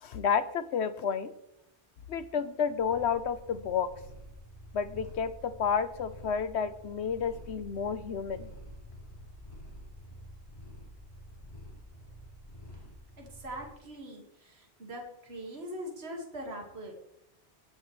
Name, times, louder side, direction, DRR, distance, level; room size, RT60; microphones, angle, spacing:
voice 1, 0.0-1.3 2.1-3.9 4.7-8.5, left 6 dB, 80° left, 12 dB, 1.1 m, -31 dB
Purr, 2.5-13.8, equal, 35° left, 4.6 m, -49 dB
voice 2, 13.2-16.9, equal, 70° right, 0 dB, 2.2 m, -42 dB
22.5 x 7.7 x 3.2 m, 0.81 s
omnidirectional pair, 1.1 m